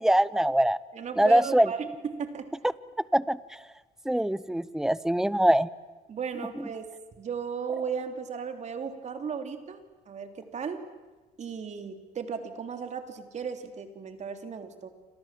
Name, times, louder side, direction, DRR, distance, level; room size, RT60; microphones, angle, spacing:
voice 1, 0.0-0.8 1.2-1.7 3.1-3.4 4.1-5.7, right 1 dB, 5° right, 18 dB, 0.8 m, -23 dB
voice 2, 0.9-2.5 6.1-6.9 7.2-10.9 11.4-14.9, right 6 dB, 45° right, 6 dB, 3.3 m, -35 dB
28.5 x 27.0 x 7.6 m, 1.2 s
cardioid pair, 110°, 17 cm